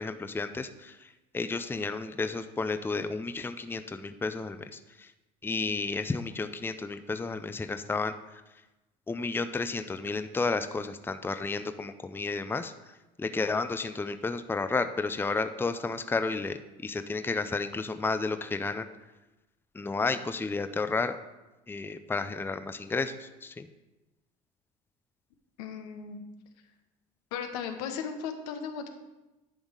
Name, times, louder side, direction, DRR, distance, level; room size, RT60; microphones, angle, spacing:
voice 1, 0.0-5.1 5.4-8.4 9.1-18.9 19.7-21.2 21.7-23.7, left 3 dB, 10° left, 10 dB, 0.5 m, -32 dB
voice 2, 25.6-26.2 27.3-28.9, left 7 dB, 85° left, 6 dB, 1.0 m, -36 dB
11.0 x 3.6 x 6.4 m, 1.0 s
supercardioid pair, 80°, 19 cm